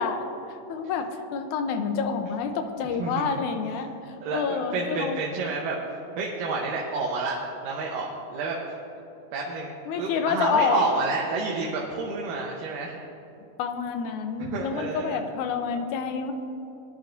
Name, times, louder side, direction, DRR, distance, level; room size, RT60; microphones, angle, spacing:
voice 1, 0.0-5.2 9.9-10.8 13.6-16.3, left 6 dB, 75° left, 6 dB, 2.1 m, -28 dB
voice 2, 3.0-3.3 4.2-7.4 7.6-8.8 9.3-9.7 10.0-13.0 14.4-15.2, right 3 dB, 85° right, -2 dB, 2.6 m, -29 dB
20.5 x 11.0 x 2.6 m, 2.9 s
omnidirectional pair, 3.8 m